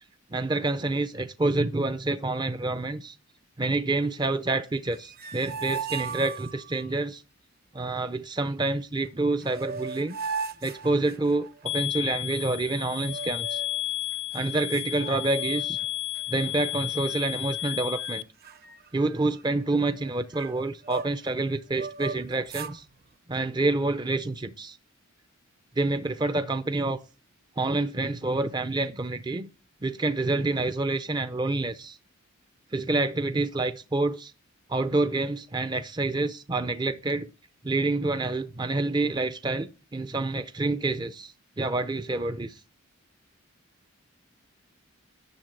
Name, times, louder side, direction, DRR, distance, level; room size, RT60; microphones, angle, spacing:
voice 1, 0.3-3.2 3.6-7.2 7.7-10.2 10.6-13.6 14.3-15.8 16.3-18.2 18.9-22.8 23.3-24.8 25.8-27.0 27.6-29.5 29.8-32.0 32.7-34.3 34.7-37.3 37.6-42.6, right 2 dB, 20° right, 0.5 m, -28 dB
sound 1, 4.9-6.9 9.1-9.2 9.4-11.6 13.0-13.8 14.3-14.4 14.7-15.8 16.1-16.5 17.1-17.7 18.0-18.1 18.4-21.3 21.7-22.8, right 5 dB, 45° right, 0.8 m, -37 dB
sound 2, 11.7-18.2, left 15 dB, 30° left, 0.5 m, -32 dB
10.5 x 7.0 x 8.0 m
head